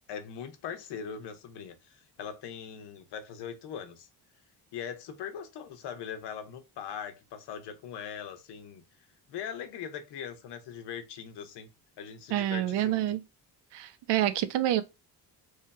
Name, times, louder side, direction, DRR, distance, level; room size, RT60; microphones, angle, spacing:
voice 1, 0.1-4.1 4.7-8.8 9.3-11.7 12.0-13.0, left 8 dB, 90° left, 0.9 m, -41 dB
voice 2, 12.3-13.2 13.7-14.8, right 12 dB, 85° right, 0.6 m, -27 dB
3.1 x 2.8 x 3.3 m
cardioid pair, 145°, 40 cm